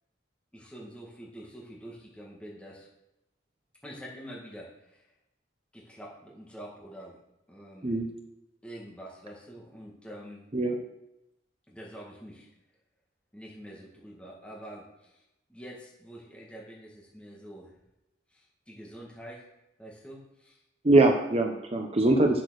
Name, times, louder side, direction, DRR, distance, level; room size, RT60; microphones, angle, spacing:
voice 1, 0.5-2.9 3.8-5.1 5.7-7.2 7.5-8.0 8.6-10.4 11.7-12.5 13.3-15.2 15.5-17.7 18.3-19.5 19.8-20.6, equal, 5° left, -4 dB, 1.9 m, -46 dB
voice 2, 20.8-22.4, right 2 dB, 35° right, 4 dB, 0.8 m, -22 dB
8.3 x 6.5 x 6.4 m, 0.90 s
head